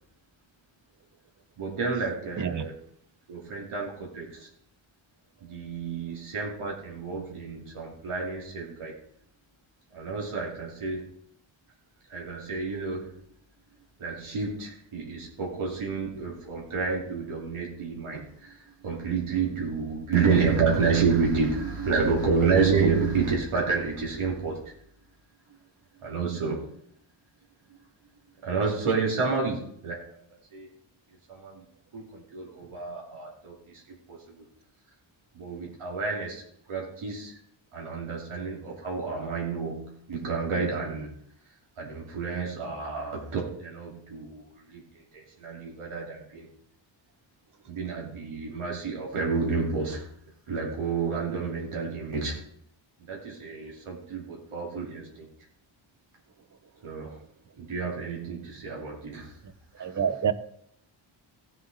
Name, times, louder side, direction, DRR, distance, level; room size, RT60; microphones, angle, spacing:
voice 1, 1.6-2.7 3.3-4.5 5.4-8.9 9.9-11.1 12.1-13.1 14.0-24.6 26.0-26.8 27.7-27.8 28.4-30.2 30.5-30.7 31.3-31.6 31.9-34.5 35.3-36.4 36.7-37.4 37.7-41.1 41.8-46.5 47.6-50.1 50.5-52.4 53.0-55.3 56.8-57.2 57.6-59.4 59.8-60.0, right 5 dB, 80° right, 2.8 m, -30 dB
voice 2, 59.8-60.3, right 7 dB, 40° right, 0.7 m, -27 dB
16.0 x 7.7 x 4.1 m
wide cardioid pair, 165°, 49 cm